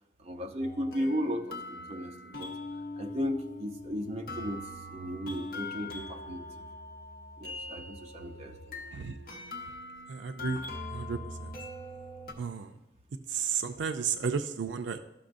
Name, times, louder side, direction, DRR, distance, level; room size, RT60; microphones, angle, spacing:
voice 1, 0.2-2.5 3.0-4.6 4.9-6.6 7.4-8.8 9.3-9.4, equal, 35° right, 3 dB, 0.7 m, -35 dB
sound 1, 0.6-12.3, left 2 dB, 50° left, 1.1 m, -42 dB
voice 2, 10.1-10.6 10.9-11.5 12.4-12.7 13.3-15.0, right 6 dB, 80° right, 8 dB, 0.4 m, -33 dB
13.0 x 6.1 x 2.6 m, 0.94 s
head